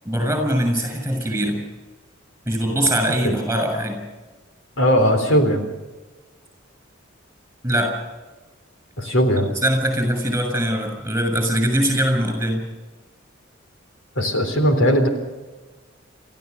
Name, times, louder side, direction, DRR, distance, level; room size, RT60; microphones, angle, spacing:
voice 1, 0.0-1.6 2.5-4.0 7.6-7.9 9.6-12.6, equal, 10° right, 5 dB, 6.8 m, -22 dB
voice 2, 4.8-5.6 9.0-9.5 14.2-15.1, equal, 75° left, 5 dB, 3.8 m, -18 dB
28.5 x 14.0 x 6.8 m, 1.2 s
head